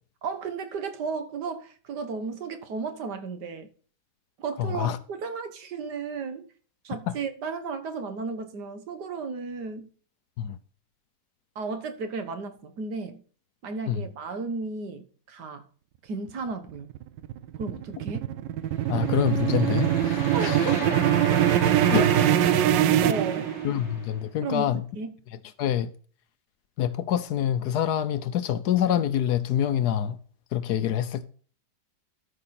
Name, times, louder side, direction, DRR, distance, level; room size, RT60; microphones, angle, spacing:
voice 1, 0.2-3.7 4.4-6.5 6.8-9.9 11.6-13.2 13.6-15.7 16.0-16.9 17.6-18.3 20.3-21.0 21.5-21.7 22.0-22.2 22.5-22.6 23.0-23.5 24.4-25.1, right 4 dB, 70° right, 1.8 m, -34 dB
voice 2, 4.6-5.0 7.1-7.2 10.4-10.6 13.9-14.0 18.9-20.6 21.9-22.1 23.6-24.8 25.6-25.9 26.8-30.2 30.5-31.3, left 10 dB, 70° left, 1.2 m, -26 dB
sound 1, 16.7-23.9, right 11 dB, 90° right, 1.3 m, -23 dB
sound 2, 18.8-24.2, left 6 dB, 45° left, 1.1 m, -38 dB
13.0 x 5.8 x 4.2 m
omnidirectional pair, 1.9 m